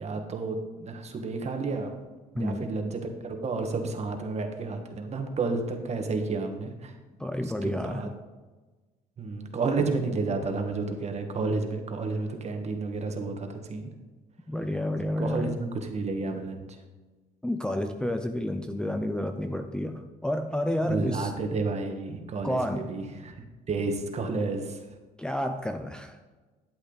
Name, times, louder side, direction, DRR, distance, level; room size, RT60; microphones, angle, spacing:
voice 1, 0.0-1.9 2.3-6.9 7.6-8.1 9.2-13.9 15.2-16.6 20.8-23.4 23.7-24.8, right 3 dB, 40° right, 5 dB, 1.7 m, -31 dB
voice 2, 2.4-2.7 7.2-8.1 14.5-15.6 17.4-21.3 22.4-22.9 25.2-26.2, left 1 dB, 5° left, 5 dB, 0.6 m, -30 dB
12.0 x 8.1 x 4.0 m, 1.3 s
cardioid pair, 110°, 17 cm